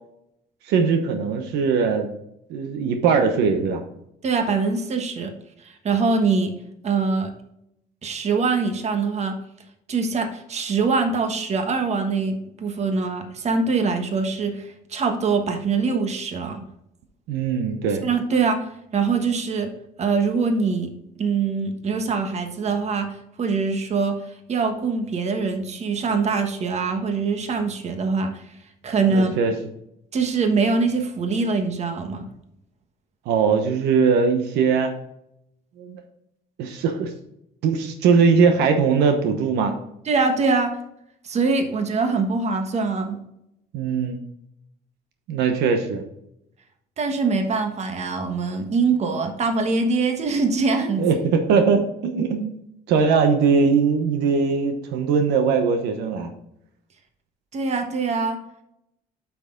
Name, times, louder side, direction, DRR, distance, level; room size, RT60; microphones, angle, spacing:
voice 1, 0.7-2.1 2.5-3.8 17.3-18.1 29.1-29.5 33.3-34.9 35.8-36.0 36.6-37.1 37.6-39.8 43.7-44.2 45.3-46.0 51.0-52.5 52.9-56.3, right 5 dB, 85° right, 6 dB, 1.1 m, -20 dB
voice 2, 4.2-5.3 5.6-6.5 6.8-7.3 8.0-9.4 9.9-16.6 18.0-18.6 18.9-19.7 20.0-20.9 21.2-24.2 24.5-28.4 28.8-29.3 30.1-32.3 40.0-40.8 41.2-43.2 47.0-51.1 57.5-58.4, right 4 dB, 40° right, 5 dB, 1.3 m, -23 dB
8.0 x 6.1 x 3.8 m, 0.78 s
cardioid pair, 110°, 17 cm